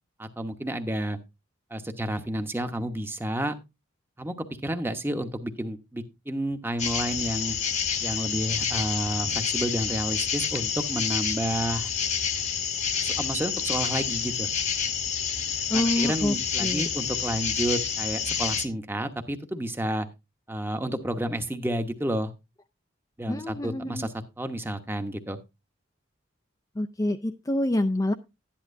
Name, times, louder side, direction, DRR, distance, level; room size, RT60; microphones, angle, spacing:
voice 1, 0.2-1.2 1.7-3.6 4.2-7.6 8.0-11.9 13.0-14.5 15.7-20.1 20.5-22.3 23.2-25.4, right 1 dB, 10° right, 7 dB, 1.0 m, -30 dB
sound 1, 6.8-18.7, left 7 dB, 35° left, 1.0 m, -28 dB
voice 2, 15.7-16.9 23.3-24.1 26.8-28.1, left 1 dB, 20° left, 6 dB, 0.5 m, -27 dB
12.0 x 10.5 x 2.6 m, 0.25 s
head